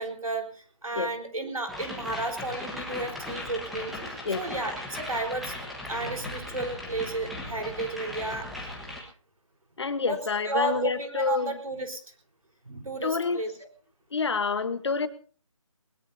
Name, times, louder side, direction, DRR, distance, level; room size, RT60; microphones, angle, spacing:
voice 1, 0.0-5.5 5.9-8.7 10.0-12.0 12.6-13.5, right 2 dB, 85° right, 4 dB, 4.3 m, -33 dB
sound 1, 1.7-9.0, left 1 dB, ahead, 1.3 m, -38 dB
voice 2, 9.8-11.6 13.0-13.4 14.1-15.1, left 4 dB, 50° left, 12 dB, 1.3 m, -28 dB
20.5 x 20.0 x 2.8 m, 0.41 s
figure-of-eight pair, 165°, 18 cm